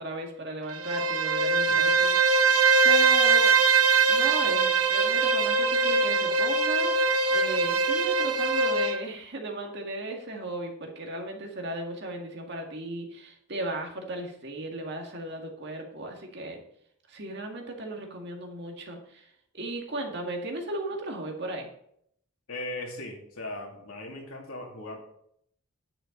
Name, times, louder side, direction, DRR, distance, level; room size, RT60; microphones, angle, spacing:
voice 1, 0.0-2.4 2.8-3.6 4.1-6.9 7.3-16.6 17.1-19.3 19.5-21.7, right 1 dB, 50° right, 2 dB, 2.0 m, -36 dB
Bowed string instrument, 0.7-9.0, right 4 dB, 90° right, 0.9 m, -22 dB
voice 2, 22.5-25.0, left 2 dB, 85° left, 1 dB, 2.5 m, -38 dB
10.0 x 8.5 x 3.9 m, 0.69 s
head